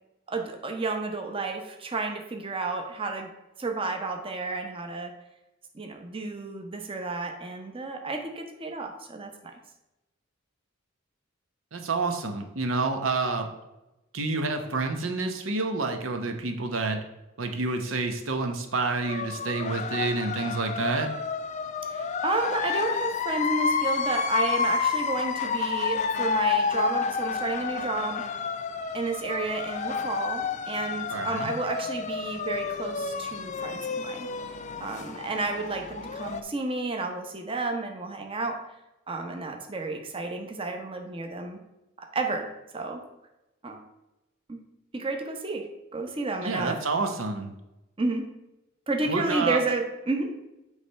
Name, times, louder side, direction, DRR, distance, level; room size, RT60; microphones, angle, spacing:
voice 1, 0.3-3.3 3.6-5.1 5.7-9.5 21.9-28.2 28.9-34.3 34.8-38.6 39.1-41.6 42.0-42.5 42.7-43.0 43.6-43.8 44.5-44.6 44.9-46.8 48.0-48.3 48.9-50.3, right 3 dB, 25° right, 4 dB, 0.8 m, -31 dB
voice 2, 11.7-13.5 14.1-17.0 17.4-21.1 31.1-31.5 46.4-47.5 49.1-49.6, right 3 dB, 90° right, 5 dB, 0.9 m, -28 dB
sound 1, 19.0-36.4, left 5 dB, 35° left, 0.4 m, -30 dB
8.2 x 3.3 x 5.5 m, 0.96 s
head